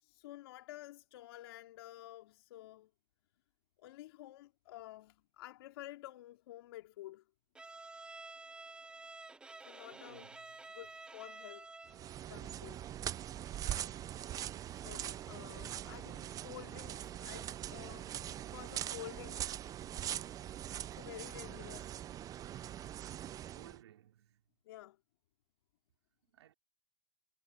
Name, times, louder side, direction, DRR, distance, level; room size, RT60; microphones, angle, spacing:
voice 1, 0.0-2.9 3.8-7.2 9.7-10.3 10.7-11.7 12.3-12.8 14.6-19.5 20.9-22.0 24.6-25.0, left 15 dB, 60° left, 2.8 m, -51 dB
Bowed string instrument, 7.5-12.1, right 3 dB, 5° right, 0.5 m, -51 dB
voice 2, 9.9-10.4 23.5-24.4 26.3-26.5, right 12 dB, 70° right, 3.1 m, -58 dB
sound 1, 11.9-23.8, right 11 dB, 25° right, 0.9 m, -42 dB
hypercardioid pair, 120°, 14 cm